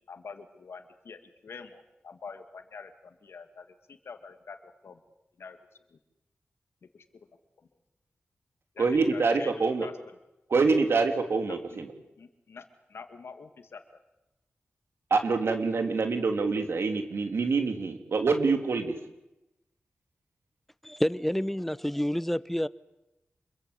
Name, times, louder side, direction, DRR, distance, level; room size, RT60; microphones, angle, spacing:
voice 1, 0.1-5.0 5.4-5.6 5.9-6.0 6.9-7.0 8.7-9.9 11.7-11.8 12.2-13.8, left 5 dB, 80° left, 2.1 m, -46 dB
voice 2, 8.8-9.9 10.5-11.9 15.1-19.0, right 4 dB, 75° right, 3.1 m, -26 dB
voice 3, 20.8-22.7, equal, 5° left, 0.9 m, -28 dB
27.0 x 22.5 x 8.4 m
cardioid pair, 60°, 4 cm